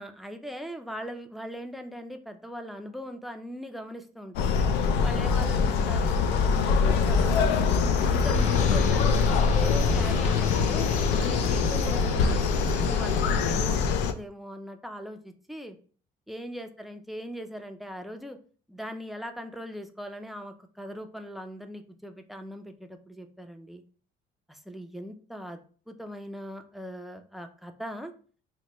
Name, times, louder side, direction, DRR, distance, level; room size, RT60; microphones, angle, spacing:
voice 1, 0.0-4.6 5.0-7.8 8.1-10.9 11.2-12.4 12.7-15.8 16.3-18.4 18.7-23.8 24.5-28.1, equal, ahead, 6 dB, 0.4 m, -40 dB
sound 1, 4.3-14.1, left 5 dB, 85° left, 0.4 m, -24 dB
sound 2, 8.3-13.6, left 7 dB, 45° left, 0.7 m, -32 dB
2.9 x 2.2 x 4.1 m, 0.42 s
cardioid pair, 110°, 17 cm